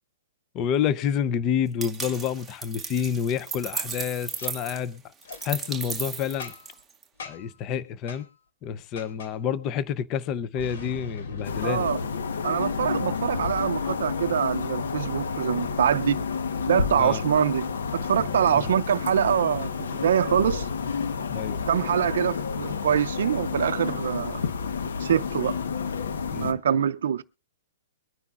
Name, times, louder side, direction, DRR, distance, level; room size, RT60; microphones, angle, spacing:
voice 1, 0.5-5.0 5.4-6.5 7.2-8.3 8.6-11.9 17.0-17.2 18.5-18.7 21.3-21.6 26.3-26.6, left 8 dB, 20° left, 0.5 m, -28 dB
sound 1, 1.8-7.0, right 6 dB, 5° right, 0.8 m, -35 dB
Boom, 4.3-4.5 5.2-5.4 6.4-6.8 7.2-7.6 8.1-8.2 9.0-9.3 10.6-13.3, left 3 dB, 70° left, 2.5 m, -40 dB
sound 2, 11.4-26.5, left 5 dB, 90° left, 1.1 m, -30 dB
voice 2, 11.6-12.0 12.4-16.2 16.7-20.7 21.7-24.4 25.0-25.6 26.3-27.2, right 8 dB, 65° right, 0.5 m, -24 dB
23.0 x 9.5 x 2.4 m
hypercardioid pair, 170°, 0 cm